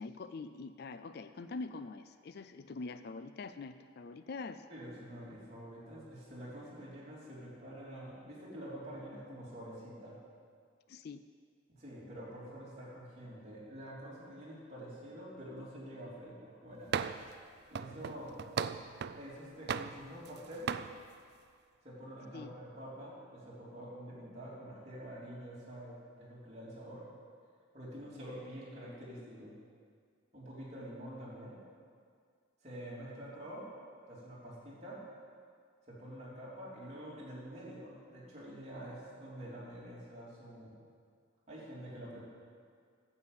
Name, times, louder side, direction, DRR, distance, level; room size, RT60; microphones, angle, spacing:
voice 1, 0.0-4.7 10.9-11.2 22.3-22.5, left 3 dB, 50° left, 11 dB, 0.4 m, -44 dB
voice 2, 4.7-10.2 11.7-17.0 17.7-18.3 19.1-20.7 21.8-27.0 27.7-29.5 30.3-31.6 32.6-33.6 34.1-35.0 35.9-40.8 41.5-42.2, equal, 35° right, -7 dB, 3.3 m, -47 dB
sound 1, 16.9-17.3 17.8-19.2 19.7-20.4 20.7-20.9, right 6 dB, 55° right, 0.3 m, -37 dB
9.6 x 8.0 x 7.4 m, 2.1 s
head